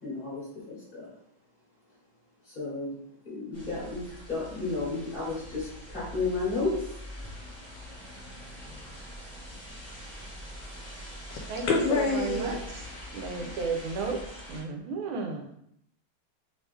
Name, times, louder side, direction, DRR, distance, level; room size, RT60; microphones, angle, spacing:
voice 1, 0.0-1.1 2.5-3.0 3.2-6.8, left 3 dB, 30° left, -6 dB, 1.3 m, -32 dB
sound 1, 3.5-14.6, equal, 10° left, 0.6 m, -43 dB
voice 2, 11.3-12.6 13.4-13.5, left 3 dB, 75° left, 1 dB, 1.3 m, -27 dB
voice 3, 11.9-12.6 13.1-14.2 14.5-15.5, right 4 dB, 80° right, 3 dB, 1.5 m, -33 dB
3.5 x 3.1 x 3.2 m, 0.72 s
omnidirectional pair, 2.3 m